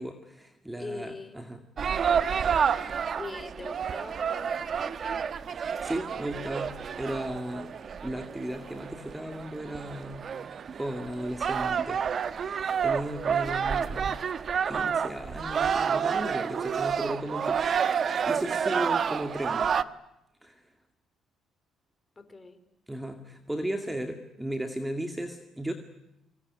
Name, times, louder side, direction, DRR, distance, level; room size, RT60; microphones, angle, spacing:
voice 1, 0.0-1.6 5.5-10.3 10.7-12.0 12.3-14.2 14.7-17.6 18.3-19.7 20.4-20.6 22.9-25.7, right 1 dB, 10° right, 6 dB, 2.2 m, -35 dB
voice 2, 0.8-1.4 3.2-5.1 22.2-22.6 23.8-24.0, left 3 dB, 20° left, 10 dB, 3.9 m, -42 dB
sound 1, 1.8-19.8, right 7 dB, 40° right, 1.1 m, -29 dB
25.0 x 24.0 x 9.7 m, 0.86 s
cardioid pair, 130°, 0 cm